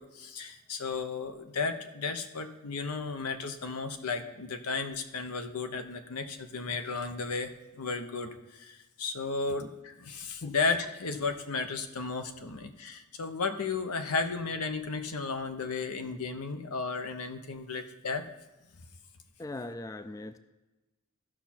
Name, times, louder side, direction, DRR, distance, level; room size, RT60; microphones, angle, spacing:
voice 1, 0.0-18.3, left 4 dB, 85° left, 7 dB, 0.9 m, -34 dB
voice 2, 19.4-20.4, left 2 dB, 15° left, 10 dB, 0.3 m, -40 dB
15.0 x 5.9 x 4.3 m, 1.1 s
head